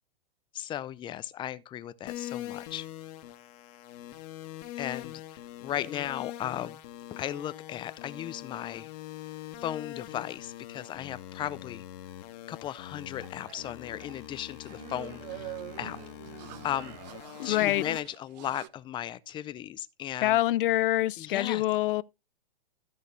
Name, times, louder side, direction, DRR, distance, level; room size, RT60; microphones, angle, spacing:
voice 1, 0.5-2.9 4.8-6.8 7.1-8.9 9.6-11.8 12.5-16.0 16.6-17.0 17.4-20.4 21.2-21.6, left 11 dB, 15° left, 0.5 m, -36 dB
sound 1, 2.1-18.0, left 13 dB, 45° left, 1.5 m, -43 dB
sound 2, 13.2-18.7, right 16 dB, 45° right, 0.6 m, -45 dB
voice 2, 17.4-17.8 20.2-22.0, left 15 dB, 60° left, 0.7 m, -25 dB
13.5 x 6.4 x 4.1 m
hypercardioid pair, 135°, 29 cm